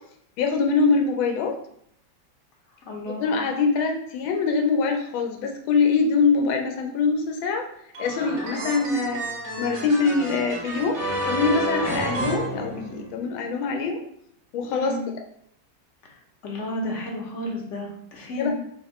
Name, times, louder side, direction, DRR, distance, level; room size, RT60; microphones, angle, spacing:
voice 1, 0.4-1.5 3.2-7.6 8.0-9.2 9.6-14.0 14.5-15.0 18.4-18.5, left 4 dB, 80° left, 3 dB, 1.4 m, -23 dB
voice 2, 2.8-3.3 14.7-15.1 16.0-16.2 16.4-18.5, left 1 dB, 50° left, -1 dB, 1.0 m, -32 dB
sound 1, 7.9-13.3, right 1 dB, 55° right, 1.2 m, -30 dB
3.5 x 2.9 x 4.2 m, 0.69 s
omnidirectional pair, 2.1 m